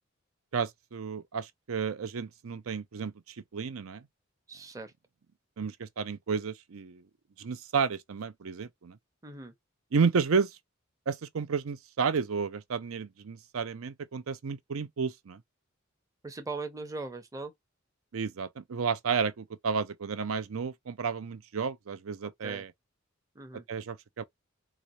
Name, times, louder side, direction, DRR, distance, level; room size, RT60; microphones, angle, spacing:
voice 1, 0.5-3.1 3.5-4.0 5.6-7.0 7.4-9.0 9.9-10.5 11.1-15.4 18.1-22.7 23.7-24.2, right 5 dB, 90° right, 0.5 m, -31 dB
voice 2, 4.5-4.9 9.2-9.5 16.2-17.5 22.2-22.6 23.4-23.6, right 3 dB, 15° right, 0.6 m, -40 dB
4.0 x 2.4 x 3.0 m
head